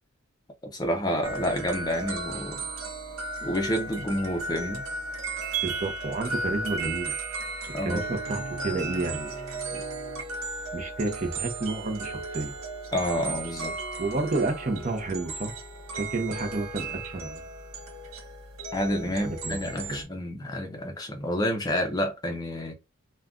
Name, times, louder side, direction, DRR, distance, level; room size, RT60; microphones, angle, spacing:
voice 1, 0.7-2.6 3.4-4.8 7.7-8.2 12.9-13.8 18.7-22.7, equal, 20° left, 0.5 m, -29 dB
sound 1, 1.2-20.0, right 3 dB, 80° right, 0.7 m, -35 dB
voice 2, 5.6-7.2 7.8-9.4 9.7-9.8 10.7-12.5 14.0-15.5 15.9-17.4 19.1-20.0, right 3 dB, 40° right, 0.6 m, -31 dB
2.3 x 2.2 x 3.6 m
head